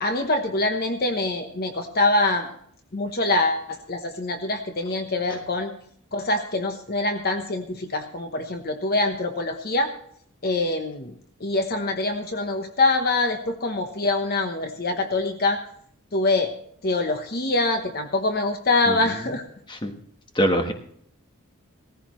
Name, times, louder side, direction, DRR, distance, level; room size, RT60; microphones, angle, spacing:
voice 1, 0.0-2.5 2.9-5.7 6.1-9.9 10.4-11.1 11.4-15.6 16.1-16.5 16.8-19.4, left 2 dB, 45° left, 6 dB, 1.0 m, -24 dB
voice 2, 20.3-20.7, equal, 20° left, 5 dB, 1.2 m, -22 dB
17.0 x 15.0 x 3.1 m, 0.65 s
head